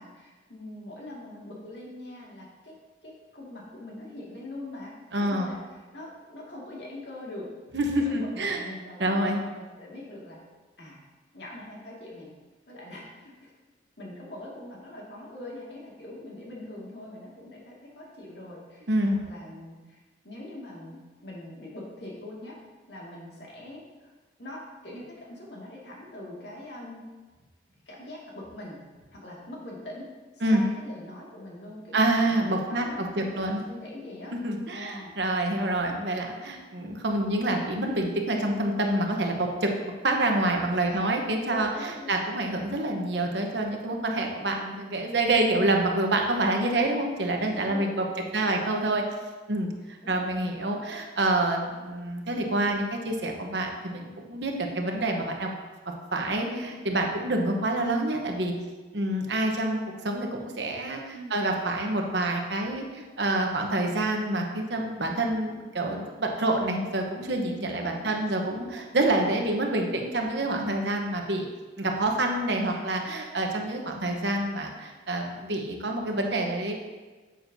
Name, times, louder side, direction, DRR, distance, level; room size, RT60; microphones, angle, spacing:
voice 1, 0.0-2.7 3.0-4.9 5.2-5.6 5.9-7.5 8.0-10.4 10.8-11.0 11.3-12.3 12.7-13.5 14.0-22.6 22.9-23.8 24.4-27.0 27.9-28.8 29.1-34.3 34.7-35.1 40.9-41.1 41.4-42.2 47.4-48.6 50.0-50.4 56.4-56.8 61.1-61.4 67.7-68.3 72.6-72.8, left 1 dB, 65° left, -4 dB, 2.2 m, -43 dB
voice 2, 5.1-5.5 7.7-8.6 9.0-9.4 18.9-19.2 30.4-30.6 31.9-33.6 34.4-39.7 40.0-41.7 42.1-48.0 48.3-49.0 49.5-49.7 50.1-55.5 56.1-58.5 58.9-71.4 71.8-76.7, right 1 dB, 65° right, 2 dB, 1.0 m, -27 dB
9.0 x 7.7 x 2.7 m, 1.3 s
head